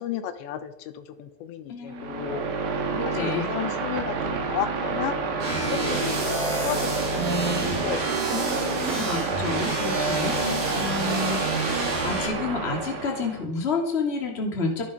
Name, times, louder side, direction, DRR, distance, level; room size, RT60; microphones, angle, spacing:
voice 1, 0.0-2.5 3.1-5.2 5.7-6.9 7.5-8.1 10.2-10.8, left 9 dB, 85° left, 10 dB, 3.3 m, -33 dB
voice 2, 1.7-2.4 2.9-3.5 8.3-10.4 10.7-14.8, left 4 dB, 20° left, 1 dB, 2.2 m, -30 dB
sound 1, 1.9-13.4, right 4 dB, 70° right, 4.2 m, -29 dB
sound 2, 5.4-12.2, right 2 dB, 50° right, 9.4 m, -29 dB
24.0 x 11.5 x 5.2 m, 0.85 s
omnidirectional pair, 5.2 m